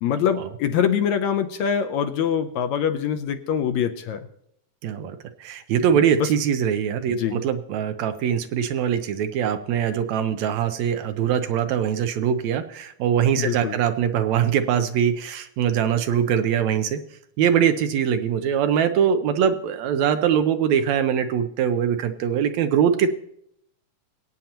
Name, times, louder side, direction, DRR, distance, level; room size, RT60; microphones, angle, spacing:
voice 1, 0.0-4.3 5.9-6.3 7.1-7.4 13.4-13.8, left 8 dB, 75° left, 8 dB, 2.0 m, -24 dB
voice 2, 5.4-17.0 17.4-23.1, right 8 dB, 75° right, 9 dB, 1.9 m, -22 dB
22.5 x 9.0 x 2.9 m, 0.73 s
omnidirectional pair, 3.4 m